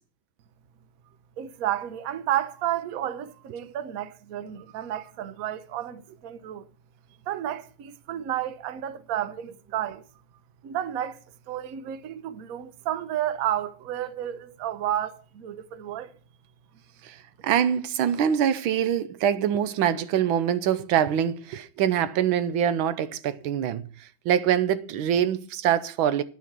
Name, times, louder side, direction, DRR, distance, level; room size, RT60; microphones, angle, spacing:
voice 1, 1.4-6.7 7.3-10.0 10.6-11.2 11.5-16.1, right 11 dB, 60° right, 1.0 m, -31 dB
voice 2, 17.0-26.2, right 9 dB, 80° right, 1.5 m, -24 dB
11.0 x 5.9 x 7.3 m
omnidirectional pair, 2.2 m